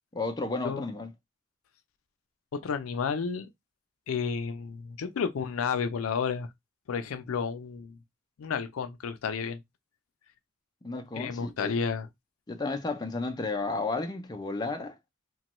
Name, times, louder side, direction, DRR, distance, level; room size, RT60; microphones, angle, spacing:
voice 1, 0.1-1.1 10.8-11.8 12.5-15.0, left 3 dB, 20° left, 0.4 m, -32 dB
voice 2, 2.5-3.5 4.1-6.5 6.9-8.0 8.4-9.6 11.1-12.1, left 6 dB, 85° left, 0.4 m, -31 dB
2.9 x 2.2 x 2.9 m
head